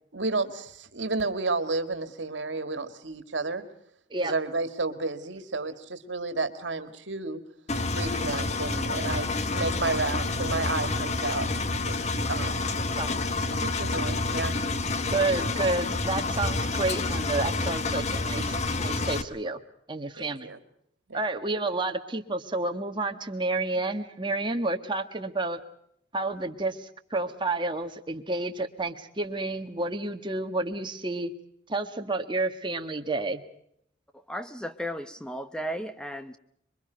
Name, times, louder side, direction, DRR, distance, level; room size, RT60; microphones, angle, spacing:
voice 1, 0.1-3.6 4.2-7.4 7.9-12.0 12.3-12.7 13.5-14.6 20.2-20.6 21.1-21.2, right 3 dB, 80° right, 2.0 m, -31 dB
Engine, 7.7-19.2, left 3 dB, 40° left, 1.2 m, -28 dB
voice 2, 12.8-13.2 15.1-19.6 19.9-20.5 21.1-25.6 26.1-31.3 31.7-33.4, right 2 dB, 25° right, 1.7 m, -30 dB
voice 3, 34.3-36.4, equal, 5° left, 0.9 m, -35 dB
26.5 x 23.0 x 5.1 m
head